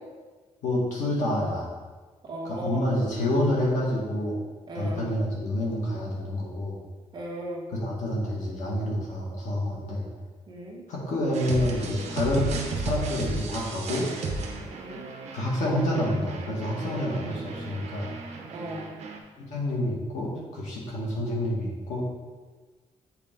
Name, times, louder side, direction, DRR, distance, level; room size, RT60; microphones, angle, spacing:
voice 1, 0.6-1.7 2.4-4.3 4.8-6.8 7.8-10.1 10.9-14.1 15.3-18.1 19.4-22.0, left 1 dB, 85° left, -3 dB, 1.9 m, -28 dB
voice 2, 2.2-2.8 4.7-5.1 7.1-7.6 10.5-10.8 14.7-15.1 18.5-18.9, right 1 dB, 35° right, -2 dB, 1.1 m, -36 dB
sound 1, 11.3-19.2, right 3 dB, 65° right, 0.8 m, -34 dB
8.2 x 4.4 x 3.7 m, 1.4 s
wide cardioid pair, 175°, 12 cm